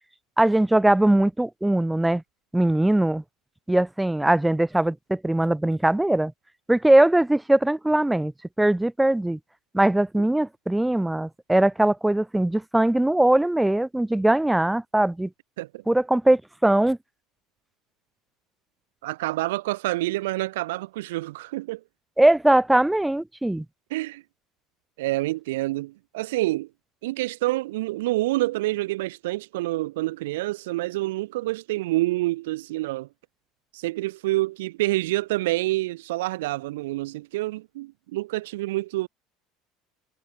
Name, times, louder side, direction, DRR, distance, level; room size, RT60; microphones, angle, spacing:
voice 1, 0.4-2.2 2.5-3.2 3.7-6.3 6.7-8.3 8.6-9.4 9.7-15.3 15.9-17.0 22.2-23.7, right 1 dB, 5° right, 0.5 m, -21 dB
voice 2, 19.0-21.8 23.9-24.2 25.0-26.7 27.0-33.1 33.7-39.1, right 18 dB, 80° right, 1.4 m, -27 dB
hypercardioid pair, 80°, 0 cm